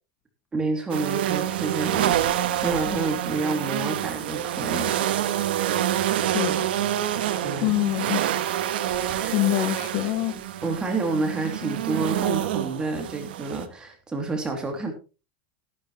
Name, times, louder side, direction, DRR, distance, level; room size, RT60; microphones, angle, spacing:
voice 1, 0.5-4.9 7.4-7.8 9.1-9.7 10.6-14.9, right 3 dB, 15° right, 2.8 m, -29 dB
sound 1, 0.9-13.6, right 11 dB, 85° right, 1.3 m, -27 dB
voice 2, 6.3-6.6 7.6-8.2 9.3-10.4, left 18 dB, 50° left, 0.6 m, -25 dB
13.0 x 12.0 x 3.1 m
supercardioid pair, 135°, 5 cm